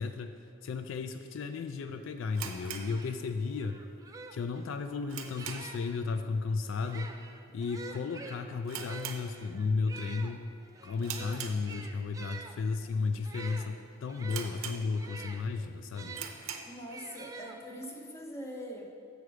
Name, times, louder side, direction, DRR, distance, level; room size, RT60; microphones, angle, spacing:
voice 1, 0.0-3.8 4.3-7.2 7.5-10.5 10.8-16.2, left 4 dB, 65° left, 8 dB, 0.3 m, -34 dB
sound 1, 2.3-3.7 3.9-4.0 4.6-5.9 6.2-6.5 6.8-6.9 7.6-7.8 8.1-8.2 8.6-9.8 10.2-10.5 11.0-12.1 12.7-12.8 13.4-13.5 13.7-13.8 14.3-15.2 15.6-15.7 16.1-16.8, right 7 dB, 80° right, 0.6 m, -42 dB
sound 2, 2.8-6.0 6.7-16.3 16.9-18.0, right 4 dB, 15° right, 0.3 m, -47 dB
voice 2, 16.6-18.8, equal, 15° left, 1 dB, 0.7 m, -42 dB
6.7 x 6.4 x 4.8 m, 2.3 s
head